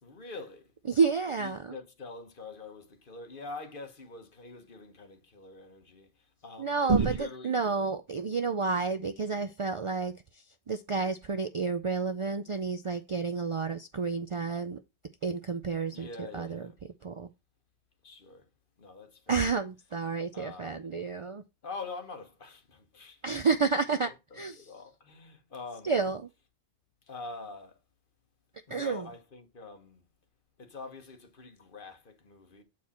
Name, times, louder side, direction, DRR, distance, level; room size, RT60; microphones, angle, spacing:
voice 1, 0.0-0.7 1.4-7.5 15.9-16.8 18.0-18.5 18.8-19.4 20.3-20.9 21.6-23.2 23.9-26.0 27.0-27.8 28.7-30.0 30.6-32.6, left 3 dB, 55° left, 1.4 m, -45 dB
voice 2, 0.9-1.7 6.6-14.8 15.2-16.1 16.3-16.6 17.0-17.3 19.3-21.4 23.2-24.7 25.8-26.2 28.7-29.1, right 4 dB, 50° right, 0.4 m, -30 dB
7.4 x 4.6 x 4.2 m
omnidirectional pair, 1.0 m